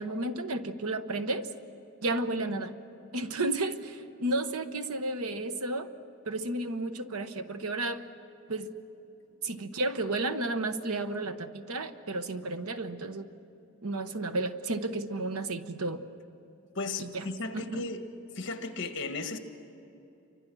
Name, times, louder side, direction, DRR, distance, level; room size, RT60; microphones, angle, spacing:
voice 1, 0.0-1.5 2.0-2.7 3.1-5.9 6.2-8.0 8.5-8.7 9.4-13.3 13.8-16.0 17.0-17.2 17.5-17.8, right 2 dB, 85° right, 9 dB, 1.1 m, -32 dB
voice 2, 16.7-18.0 18.3-19.4, left 3 dB, 55° left, 7 dB, 1.6 m, -35 dB
29.0 x 24.5 x 6.3 m, 2.9 s
head